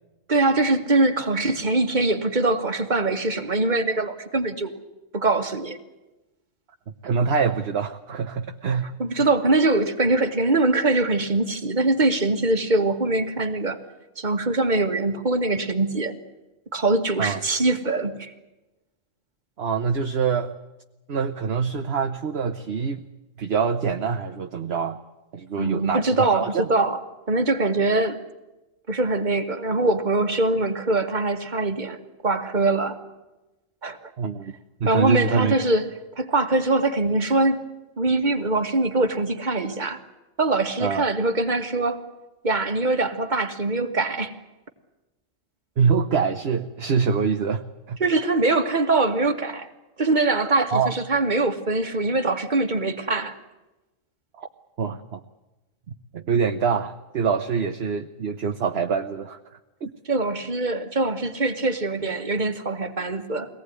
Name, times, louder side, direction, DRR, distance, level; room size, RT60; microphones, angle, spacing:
voice 1, 0.3-4.8 5.1-5.8 9.0-13.8 14.2-16.1 16.7-18.3 25.6-27.0 27.3-28.2 28.9-32.0 32.2-33.0 33.8-34.1 34.9-35.9 36.2-37.6 38.0-40.0 40.4-42.0 42.4-44.3 48.0-49.7 50.0-53.4 60.1-63.5, right 2 dB, 35° right, 7 dB, 1.9 m, -23 dB
voice 2, 7.0-9.3 17.2-17.4 19.6-20.5 21.1-23.0 23.4-25.0 25.3-26.7 34.2-34.5 34.8-35.5 40.8-41.1 45.8-48.0 50.7-50.9 54.4-54.5 54.8-55.2 56.1-59.4 59.8-59.9, right 6 dB, 55° right, 7 dB, 1.3 m, -25 dB
24.0 x 18.5 x 9.5 m, 1.0 s
omnidirectional pair, 1.4 m